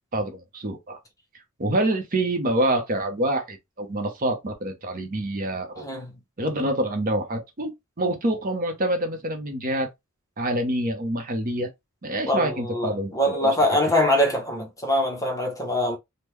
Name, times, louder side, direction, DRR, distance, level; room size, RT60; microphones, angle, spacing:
voice 1, 0.1-1.0 1.6-5.9 6.4-9.9 10.4-11.7 12.0-13.5, right 1 dB, 40° right, 0.7 m, -26 dB
voice 2, 5.8-6.1 12.3-16.0, left 1 dB, 15° left, 0.7 m, -23 dB
3.6 x 2.1 x 3.1 m
head